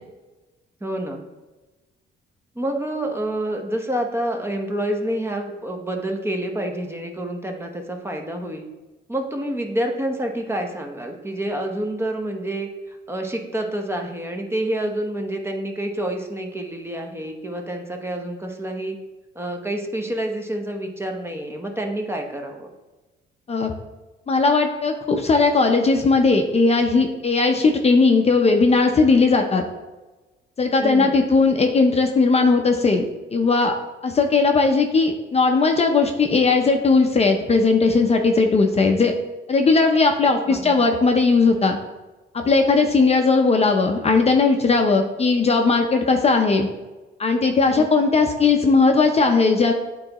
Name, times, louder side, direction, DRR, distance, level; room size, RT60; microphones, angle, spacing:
voice 1, 0.8-1.2 2.5-8.7 9.1-19.0 19.3-22.7 30.8-31.2 40.5-40.8 47.7-47.9, right 1 dB, 10° right, 3 dB, 0.9 m, -28 dB
voice 2, 24.3-29.6 30.6-33.0 33.3-33.7 34.0-39.1 39.5-41.8 42.3-46.7 47.2-49.7, left 4 dB, 30° left, 4 dB, 0.6 m, -18 dB
8.5 x 3.9 x 2.9 m, 1.1 s
cardioid pair, 90°, 20 cm